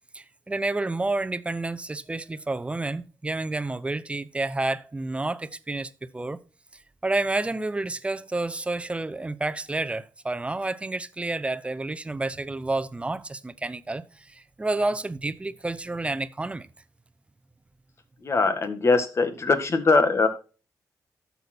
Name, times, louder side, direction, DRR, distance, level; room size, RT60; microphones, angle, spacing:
voice 1, 0.1-6.4 7.0-16.7, right 2 dB, 20° right, 0.8 m, -30 dB
voice 2, 18.2-20.3, left 3 dB, 45° left, 1.8 m, -21 dB
12.5 x 7.0 x 4.4 m
cardioid pair, 90°, 7 cm